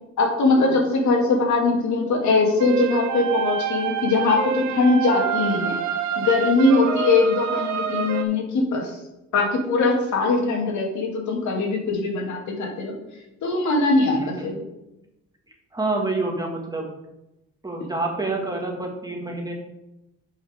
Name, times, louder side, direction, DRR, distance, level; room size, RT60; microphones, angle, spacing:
voice 1, 0.2-5.8 6.2-8.9 9.3-13.0 13.4-14.6, left 3 dB, 70° left, 0 dB, 2.3 m, -21 dB
sound 1, 2.6-8.2, right 8 dB, 70° right, 0.8 m, -27 dB
voice 2, 14.1-14.5 15.7-16.9 17.6-19.5, right 2 dB, 15° right, 0 dB, 1.9 m, -28 dB
10.5 x 5.7 x 3.6 m, 0.92 s
cardioid pair, 90°, 30 cm